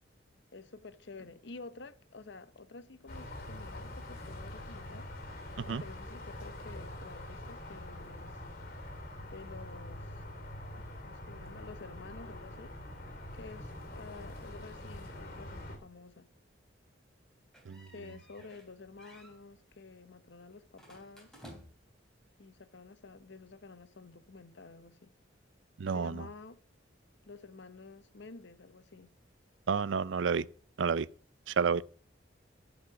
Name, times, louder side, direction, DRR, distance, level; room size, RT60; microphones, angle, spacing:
voice 1, 0.5-5.1 5.7-8.4 9.3-10.2 10.7-12.8 13.3-16.3 17.9-21.3 22.4-25.1 25.9-26.6 27.2-29.1, left 3 dB, 65° left, 0.9 m, -50 dB
sound 1, 3.1-15.8, left 1 dB, 50° left, 3.3 m, -45 dB
sound 2, 17.5-18.7 19.0-19.4 20.8-22.0, equal, 5° left, 3.6 m, -54 dB
voice 2, 25.8-26.3 29.7-30.5 30.8-31.1 31.5-31.8, right 6 dB, 75° right, 0.5 m, -30 dB
14.5 x 5.5 x 5.9 m
head